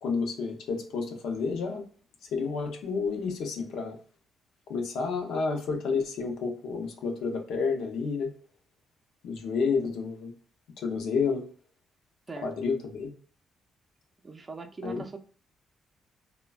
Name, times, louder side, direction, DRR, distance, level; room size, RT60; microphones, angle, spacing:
voice 1, 0.0-1.8 2.3-4.0 4.7-8.3 9.2-10.3 10.8-11.5 12.4-13.1 14.8-15.0, left 5 dB, 80° left, 3 dB, 0.6 m, -30 dB
voice 2, 14.2-15.2, right 3 dB, 30° right, 5 dB, 0.5 m, -40 dB
3.2 x 2.1 x 2.2 m, 0.42 s
cardioid pair, 90°, 0 cm